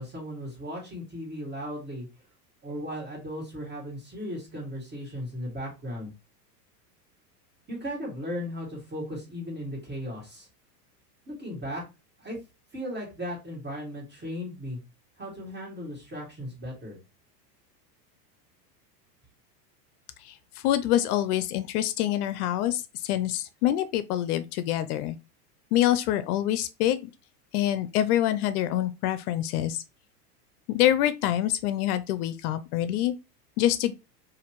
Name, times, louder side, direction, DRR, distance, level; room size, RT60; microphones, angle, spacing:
voice 1, 0.0-2.1 2.6-6.1 7.7-10.5 11.3-11.8 12.2-12.4 12.7-14.8 15.2-17.0, equal, 20° right, 2.0 m, -36 dB
voice 2, 20.6-25.2 25.7-27.0 27.5-29.8 30.7-33.1 33.6-33.9, left 12 dB, 65° left, 0.5 m, -26 dB
4.1 x 2.6 x 3.0 m
supercardioid pair, 120°, 48 cm